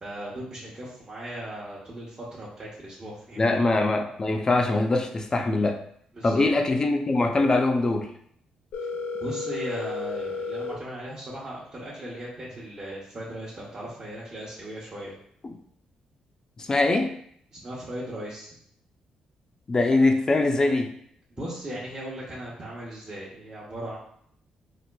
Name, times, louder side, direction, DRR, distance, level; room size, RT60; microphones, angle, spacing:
voice 1, 0.0-3.4 6.1-6.5 9.2-15.1 17.5-18.5 21.3-24.0, right 1 dB, 35° right, -8 dB, 0.9 m, -37 dB
voice 2, 3.4-5.8 6.2-8.1 15.4-15.6 16.6-17.1 19.7-20.9, left 2 dB, 30° left, 5 dB, 0.4 m, -23 dB
Telephone, 8.7-10.7, left 3 dB, 85° left, 0.6 m, -32 dB
4.2 x 2.5 x 2.2 m, 0.66 s
cardioid pair, 90°, 2 cm